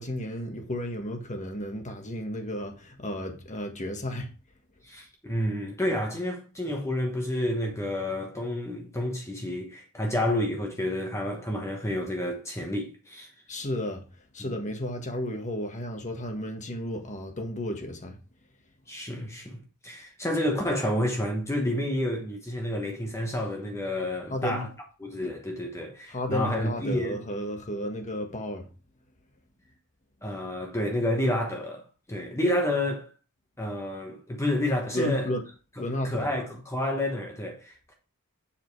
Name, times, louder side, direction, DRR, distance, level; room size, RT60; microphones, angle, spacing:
voice 1, 0.0-4.3 13.5-14.0 14.3-18.2 24.3-24.7 26.1-28.7 34.9-35.4 35.8-36.3, left 1 dB, 35° left, 1.6 m, -33 dB
voice 2, 4.8-13.3 14.4-14.5 18.9-24.7 25.0-27.2 30.2-31.8 32.1-33.1 33.6-35.3 36.0-37.9, left 1 dB, 15° left, 1.2 m, -29 dB
7.3 x 5.2 x 4.7 m
head